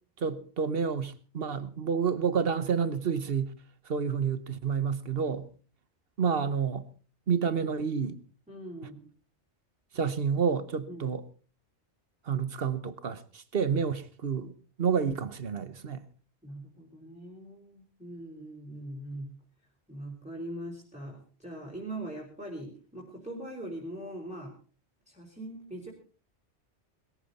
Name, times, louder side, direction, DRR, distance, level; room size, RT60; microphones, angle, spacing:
voice 1, 0.2-3.5 3.9-5.5 6.2-6.9 7.3-8.2 9.9-11.2 12.3-14.5 14.8-16.0, right 6 dB, 55° right, 1.3 m, -29 dB
voice 2, 8.5-9.1 10.9-11.2 16.4-19.4 19.9-24.6 25.1-25.9, right 1 dB, 5° right, 4.0 m, -41 dB
21.0 x 14.5 x 4.2 m
omnidirectional pair, 1.2 m